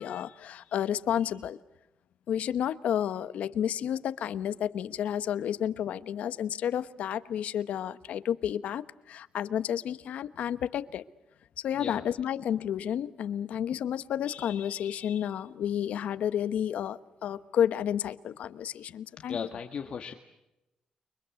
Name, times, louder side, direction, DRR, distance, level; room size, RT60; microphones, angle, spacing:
voice 1, 0.0-1.6 2.3-11.0 11.6-19.4, left 9 dB, 80° left, 14 dB, 1.1 m, -31 dB
voice 2, 19.2-20.1, left 6 dB, 50° left, 6 dB, 1.6 m, -36 dB
29.5 x 24.0 x 8.3 m, 0.95 s
cardioid pair, 130°, 2 cm